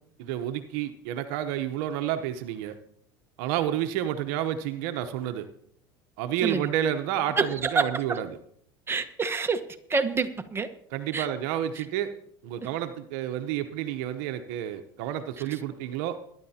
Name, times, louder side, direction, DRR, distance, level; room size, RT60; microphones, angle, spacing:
voice 1, 0.2-2.7 3.4-5.5 6.2-8.3 10.9-12.1 12.4-16.2, right 11 dB, 70° right, 8 dB, 0.9 m, -30 dB
voice 2, 7.4-8.2 8.9-9.6 9.9-10.7 11.1-11.3 11.7-11.9 15.4-15.6, right 4 dB, 20° right, 8 dB, 1.2 m, -28 dB
22.0 x 11.0 x 2.9 m, 0.68 s
hypercardioid pair, 90°, 11 cm